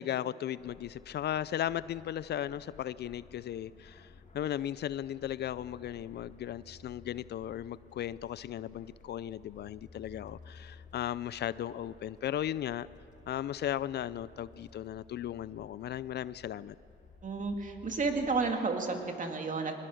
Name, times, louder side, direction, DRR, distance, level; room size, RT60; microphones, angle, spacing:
voice 1, 0.0-4.1 4.3-12.9 13.3-16.8, left 11 dB, 55° left, 18 dB, 0.4 m, -36 dB
sound 1, 0.6-18.5, left 3 dB, 40° left, 1.8 m, -56 dB
voice 2, 17.2-19.8, right 4 dB, 40° right, 4 dB, 2.5 m, -32 dB
21.5 x 20.5 x 6.4 m, 2.8 s
cardioid pair, 90°, 20 cm